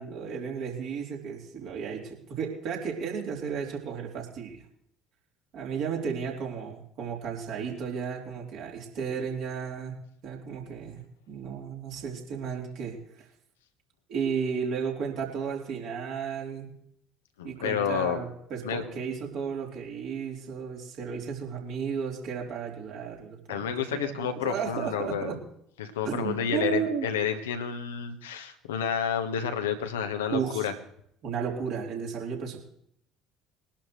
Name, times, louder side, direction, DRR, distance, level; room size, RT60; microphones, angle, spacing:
voice 1, 0.0-4.6 5.5-9.9 10.2-13.3 14.1-16.7 17.4-25.4 26.0-27.1 30.3-30.7 31.2-32.6, right 6 dB, 55° right, -2 dB, 3.7 m, -34 dB
voice 2, 17.4-18.2 18.6-18.8 23.5-25.4 25.8-30.7, left 8 dB, 70° left, 7 dB, 1.2 m, -30 dB
22.0 x 11.5 x 3.2 m, 0.70 s
figure-of-eight pair, 60°, 0 cm